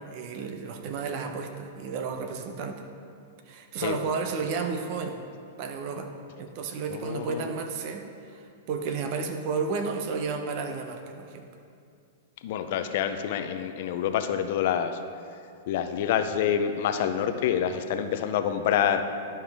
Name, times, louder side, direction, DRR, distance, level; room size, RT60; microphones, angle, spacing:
voice 1, 0.0-2.8 3.5-5.2 5.6-6.1 6.4-8.0 8.3-8.4 8.7-11.5, right 5 dB, 50° right, 5 dB, 0.9 m, -32 dB
voice 2, 6.9-7.4 12.4-14.9 15.7-19.0, left 9 dB, 60° left, 8 dB, 0.6 m, -27 dB
11.5 x 5.5 x 3.6 m, 2.4 s
hypercardioid pair, 130°, 0 cm